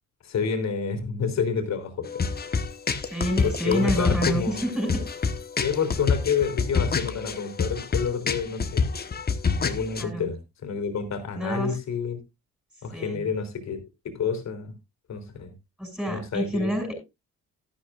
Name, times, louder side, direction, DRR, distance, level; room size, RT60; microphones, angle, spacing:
voice 1, 0.2-2.1 3.4-4.6 5.6-8.9 9.6-12.2 12.8-13.8 14.0-14.7 15.1-15.5 16.1-16.7, left 6 dB, 60° left, 6 dB, 3.4 m, -28 dB
sound 1, 2.0-10.0, left 5 dB, 30° left, 1.3 m, -27 dB
voice 2, 3.0-5.0 10.0-10.3 11.3-11.8 12.9-13.3 15.8-16.9, right 1 dB, ahead, 0 dB, 6.4 m, -28 dB
13.0 x 11.5 x 2.5 m, 0.23 s
cardioid pair, 90°, 30 cm